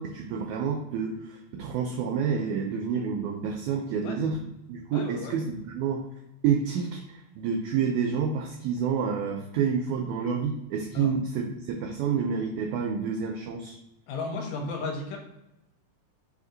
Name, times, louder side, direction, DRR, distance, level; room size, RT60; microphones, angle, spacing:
voice 1, 0.0-4.4 4.7-6.0 6.4-13.8, right 6 dB, 85° right, 2 dB, 1.7 m, -29 dB
voice 2, 4.9-5.3 10.9-11.1 14.1-15.2, left 3 dB, 75° left, 0 dB, 2.4 m, -34 dB
5.1 x 2.7 x 3.8 m, 0.89 s
omnidirectional pair, 3.9 m